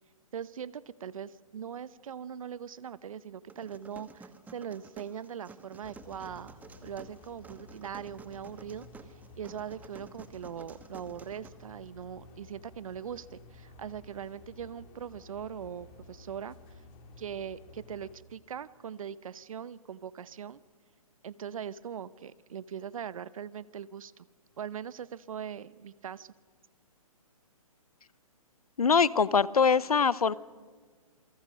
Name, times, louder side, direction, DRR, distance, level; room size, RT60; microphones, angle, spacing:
voice 1, 0.3-8.9 9.4-16.6 17.2-20.6 21.2-24.3 24.6-26.3, right 8 dB, 65° right, 18 dB, 0.9 m, -41 dB
sound 1, 3.5-11.5, right 4 dB, 10° right, 1.2 m, -52 dB
sound 2, 5.8-18.1, left 3 dB, 30° left, 3.1 m, -53 dB
voice 2, 28.8-30.3, left 6 dB, 90° left, 20 dB, 0.8 m, -23 dB
28.0 x 23.5 x 6.3 m, 1.6 s
hypercardioid pair, 135°, 18 cm